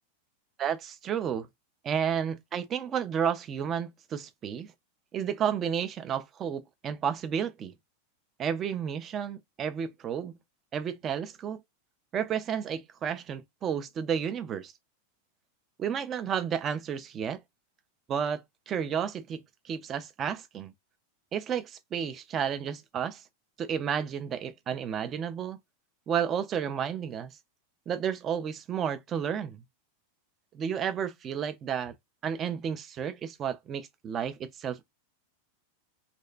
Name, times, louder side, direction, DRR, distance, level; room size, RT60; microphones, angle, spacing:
voice 1, 0.6-1.5 1.8-4.7 5.1-7.7 8.4-10.3 10.7-11.6 12.1-14.7 15.8-17.4 18.1-20.7 21.3-23.2 23.6-25.6 26.1-27.3 27.9-29.6 30.5-31.9 32.2-34.9, right 8 dB, 30° right, 0.3 m, -32 dB
2.5 x 2.1 x 2.4 m
figure-of-eight pair, 90°, 0 cm